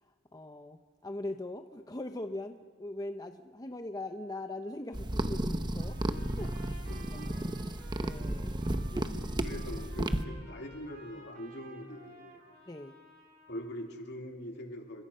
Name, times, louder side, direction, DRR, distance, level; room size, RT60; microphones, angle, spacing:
voice 1, 0.3-6.0 6.4-6.5 8.0-8.5 8.9-9.1 12.7-12.9, left 2 dB, 20° left, 6 dB, 0.8 m, -41 dB
sound 1, 4.9-10.2, right 1 dB, 20° right, 1.0 m, -33 dB
Trumpet, 5.8-13.9, right 3 dB, 50° right, 5.3 m, -54 dB
voice 2, 6.9-7.5 9.4-12.4 13.5-15.0, equal, 60° left, 3 dB, 2.9 m, -43 dB
29.5 x 25.5 x 5.6 m, 1.4 s
head